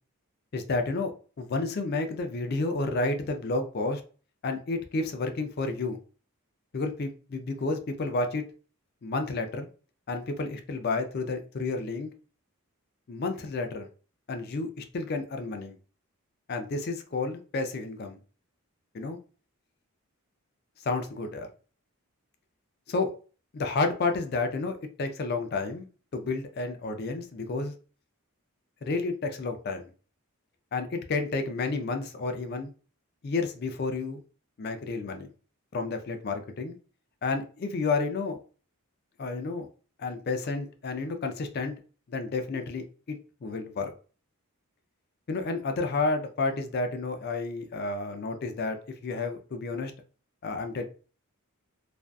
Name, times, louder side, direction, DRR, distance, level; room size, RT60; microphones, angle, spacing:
voice 1, 0.5-1.1 1.4-4.0 4.4-6.0 6.7-8.4 9.0-9.7 10.1-12.1 13.1-13.9 14.3-15.8 16.5-18.2 18.9-19.2 20.8-21.5 22.9-23.1 23.5-25.9 26.1-27.7 28.8-29.8 30.7-32.7 33.2-34.2 34.6-35.3 35.7-36.8 37.2-38.4 39.2-39.7 40.0-41.7 42.1-43.9 45.3-49.9 50.4-50.8, left 3 dB, 45° left, 7 dB, 0.4 m, -31 dB
2.5 x 2.3 x 2.2 m, 0.38 s
head